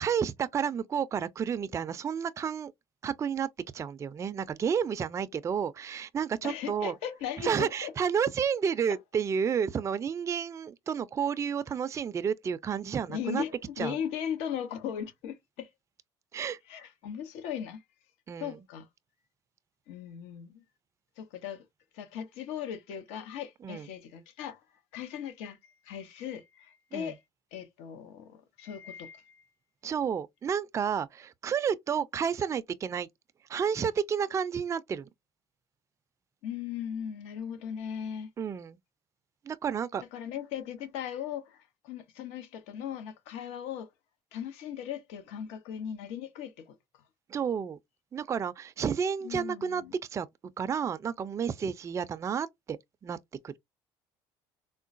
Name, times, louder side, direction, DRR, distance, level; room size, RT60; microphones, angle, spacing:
voice 1, 0.0-2.7 3.0-3.5 3.7-6.9 7.4-13.4 13.8-14.0 16.3-16.6 18.3-18.6 23.6-23.9 26.9-27.1 29.8-33.1 33.5-35.1 38.4-38.8 39.5-40.0 47.3-47.8 48.1-49.8 50.1-50.3 50.6-52.8 53.0-53.2 53.4-53.5, right 7 dB, 30° right, 0.3 m, -31 dB
voice 2, 6.4-7.9 13.1-15.7 16.7-17.8 18.4-18.9 19.9-20.6 21.2-21.6 21.9-24.6 24.9-27.2 27.5-29.4 36.4-38.3 40.1-43.9 44.3-46.7 49.2-49.9, left 9 dB, 80° left, 0.8 m, -38 dB
3.7 x 2.1 x 2.4 m
supercardioid pair, 90°, 11 cm